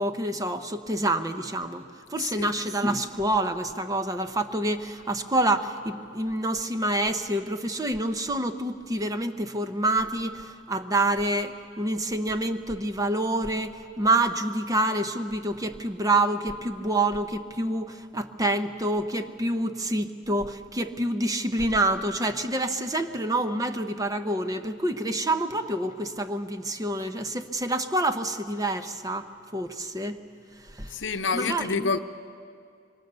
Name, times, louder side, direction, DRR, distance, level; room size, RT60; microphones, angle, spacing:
voice 1, 0.0-30.2 30.6-31.0 31.3-32.0, right 1 dB, 20° right, 8 dB, 0.8 m, -27 dB
voice 2, 2.2-2.5 30.9-32.0, left 4 dB, 75° left, 10 dB, 0.8 m, -28 dB
25.5 x 23.5 x 6.8 m, 2.4 s
head